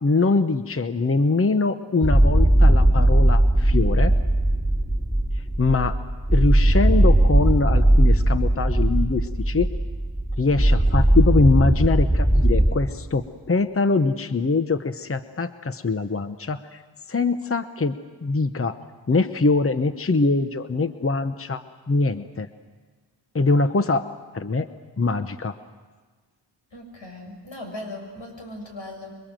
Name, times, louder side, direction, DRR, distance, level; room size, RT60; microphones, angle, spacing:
voice 1, 0.0-4.1 5.6-6.0 6.3-9.7 10.4-16.8 17.1-17.9 18.2-18.8 19.1-22.5 23.3-24.0 24.3-24.7 25.0-25.5, left 3 dB, 30° left, 10 dB, 0.9 m, -23 dB
sound 1, 2.0-12.7, right 1 dB, 5° left, 4.0 m, -18 dB
voice 2, 26.7-29.1, left 1 dB, 90° left, 2 dB, 6.3 m, -38 dB
26.0 x 23.5 x 7.6 m, 1.4 s
wide cardioid pair, 80°, 44 cm